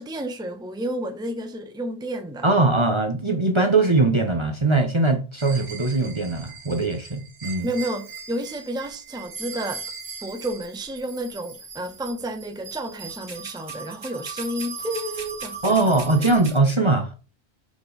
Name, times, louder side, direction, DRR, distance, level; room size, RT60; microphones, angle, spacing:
voice 1, 0.0-2.5 7.6-9.8 10.2-16.2, right 1 dB, 5° right, 0.8 m, -31 dB
voice 2, 2.4-7.7 15.6-17.1, right 3 dB, 30° right, 0.9 m, -21 dB
sound 1, 5.4-16.6, right 5 dB, 70° right, 1.7 m, -39 dB
6.0 x 5.2 x 4.8 m
omnidirectional pair, 1.1 m